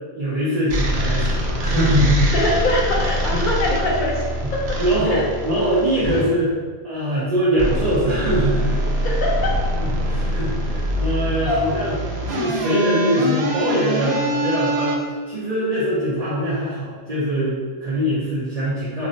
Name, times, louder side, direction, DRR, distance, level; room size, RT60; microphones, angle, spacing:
voice 1, 0.1-2.3 3.3-3.4 4.4-4.5 4.8-6.5 6.8-8.8 9.8-11.9 12.3-15.0 15.3-19.1, right 1 dB, 45° right, -10 dB, 0.6 m, -22 dB
sound 1, 0.7-6.2 7.5-15.0, equal, 85° right, 0.9 m, -24 dB
voice 2, 2.3-4.2 5.1-5.2 9.0-9.6 11.4-11.6, left 1 dB, 55° left, -3 dB, 0.8 m, -22 dB
2.4 x 2.1 x 3.8 m, 1.5 s
omnidirectional pair, 1.0 m